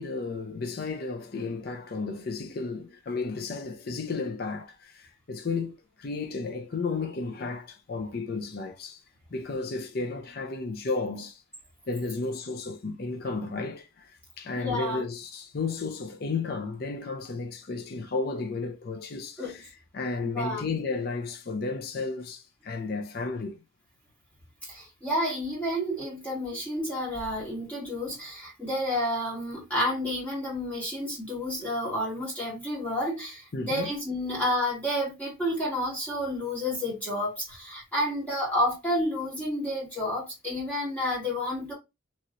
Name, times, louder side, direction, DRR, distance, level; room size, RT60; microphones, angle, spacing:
voice 1, 0.0-9.0 9.3-11.4 11.9-23.6 33.5-33.9, left 4 dB, 50° left, 0.5 m, -33 dB
voice 2, 14.6-15.1 19.4-19.6 20.2-20.8 24.7-41.7, left 1 dB, 5° left, 1.4 m, -30 dB
3.0 x 2.8 x 2.5 m
head